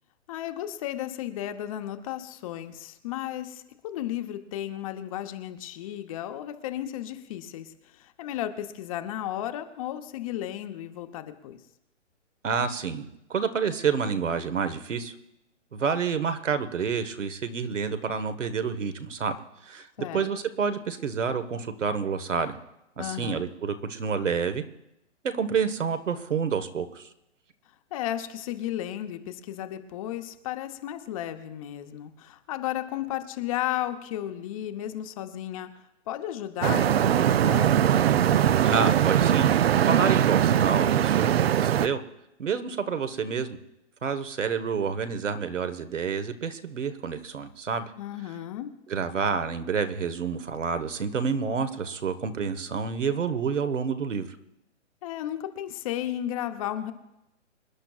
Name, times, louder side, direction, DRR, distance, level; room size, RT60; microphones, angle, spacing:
voice 1, 0.3-11.6 20.0-20.3 23.0-23.4 27.9-35.7 36.1-37.7 48.0-48.7 55.0-56.9, left 12 dB, 30° left, 8 dB, 0.9 m, -34 dB
voice 2, 12.4-15.1 15.7-19.4 19.7-19.9 20.1-22.6 23.0-24.6 25.2-27.1 38.6-39.5 39.8-42.0 42.4-43.6 44.0-47.9 48.9-54.4, right 6 dB, 80° right, 9 dB, 1.4 m, -28 dB
sound 1, 36.6-41.9, right 10 dB, 55° right, 0.5 m, -21 dB
26.5 x 10.5 x 2.4 m, 0.87 s
hypercardioid pair, 140°, 37 cm